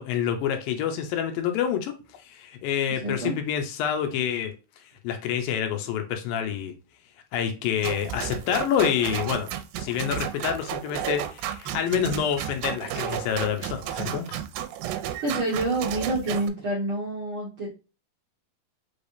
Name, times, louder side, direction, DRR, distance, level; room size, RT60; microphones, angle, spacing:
voice 1, 0.0-6.7 7.3-14.4, left 9 dB, 80° left, 2.5 m, -28 dB
voice 2, 3.0-3.3 15.2-17.7, right 2 dB, 55° right, 1.5 m, -28 dB
sound 1, 7.8-16.5, right 11 dB, 85° right, 2.3 m, -32 dB
5.6 x 3.3 x 2.6 m
omnidirectional pair, 4.1 m